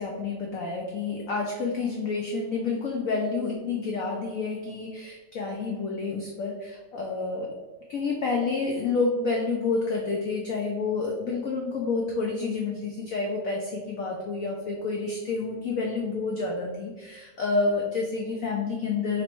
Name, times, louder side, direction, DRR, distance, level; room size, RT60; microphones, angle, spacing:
voice 1, 0.0-7.5 7.9-19.2, left 4 dB, 85° left, 0 dB, 0.7 m, -29 dB
3.1 x 3.0 x 4.4 m, 1.2 s
omnidirectional pair, 2.1 m